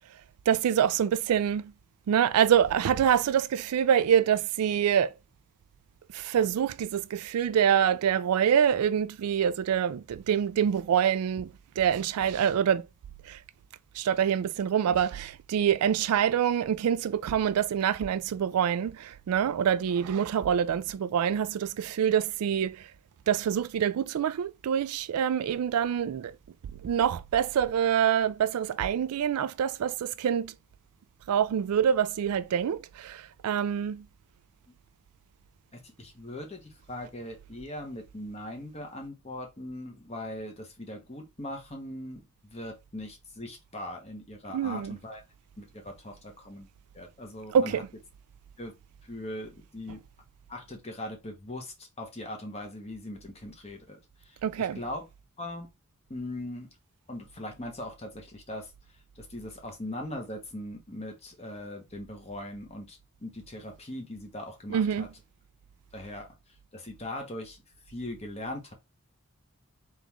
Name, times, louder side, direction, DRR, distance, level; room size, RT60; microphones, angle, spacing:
voice 1, 0.5-1.6 2.1-5.1 6.1-11.5 11.8-12.8 13.3-13.4 14.0-22.8 23.3-26.3 26.8-30.5 31.3-34.0 44.5-45.0 47.5-47.7 54.4-54.8 64.7-65.1, right 8 dB, 85° right, 0.3 m, -26 dB
voice 2, 35.7-45.2 45.6-46.7 46.9-47.8 48.6-48.7 49.0-50.0 50.5-54.0 54.3-55.0 55.4-55.7 56.1-56.7 57.1-58.7 59.2-65.1 65.9-66.3 66.7-67.6 67.9-68.7, left 1 dB, 30° left, 1.0 m, -40 dB
3.8 x 3.0 x 3.5 m
head